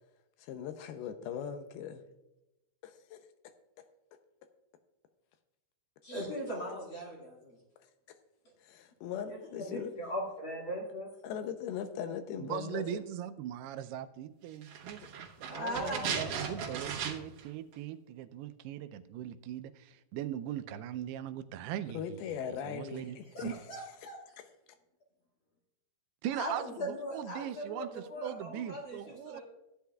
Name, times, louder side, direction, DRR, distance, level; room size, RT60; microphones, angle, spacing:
voice 1, 0.4-2.0 2.8-3.2 8.6-9.9 11.2-13.0 21.9-23.6 24.0-24.5, left 8 dB, 85° left, 8 dB, 2.5 m, -40 dB
voice 2, 6.0-7.6 9.6-11.1 15.4-16.7 23.3-24.2 26.4-26.5 26.8-29.0 29.2-29.4, equal, 40° left, -2 dB, 2.1 m, -39 dB
voice 3, 12.4-15.0 15.4-22.2 22.7-23.5 26.2-29.4, right 11 dB, 90° right, 10 dB, 2.6 m, -40 dB
sound 1, 14.6-17.5 17.7-17.8, right 7 dB, 65° right, 2.5 m, -37 dB
15.5 x 9.9 x 2.3 m, 0.93 s
omnidirectional pair, 4.5 m